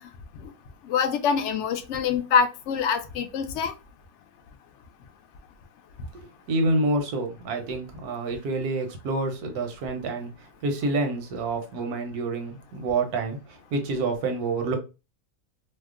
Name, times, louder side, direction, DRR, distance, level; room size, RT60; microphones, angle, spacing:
voice 1, 0.8-3.7, left 6 dB, 65° left, 0.7 m, -25 dB
voice 2, 6.5-10.3 10.6-13.4 13.7-14.8, right 2 dB, 85° right, 1.2 m, -27 dB
2.8 x 2.0 x 3.6 m
omnidirectional pair, 1.6 m